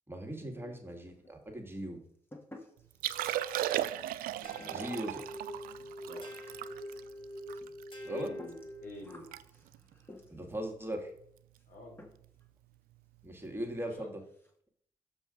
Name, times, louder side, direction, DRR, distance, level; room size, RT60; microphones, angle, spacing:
voice 1, 0.1-2.0 4.7-5.2 8.0-8.3 10.3-11.1 13.2-14.2, right 1 dB, 15° right, 2 dB, 2.1 m, -39 dB
sound 1, 0.9-1.4 1.7-10.6 11.5-11.7 12.0-12.5 12.7-12.8 13.2-13.3 13.6-13.8 14.1-14.6, left 1 dB, 15° left, 2.0 m, -57 dB
Liquid, 2.9-8.3 8.7-8.8 9.1-9.4 9.7-9.9 10.5-10.8 12.2-12.3, right 13 dB, 75° right, 0.4 m, -36 dB
voice 2, 4.4-4.9 6.0-6.3 6.5-6.6 8.1-9.3 11.7-12.0 13.9-14.1, left 2 dB, 65° left, -1 dB, 3.3 m, -47 dB
sound 2, 4.4-9.2, equal, 35° left, 2.5 m, -45 dB
6.9 x 5.3 x 5.3 m, 0.65 s
supercardioid pair, 45°, 15 cm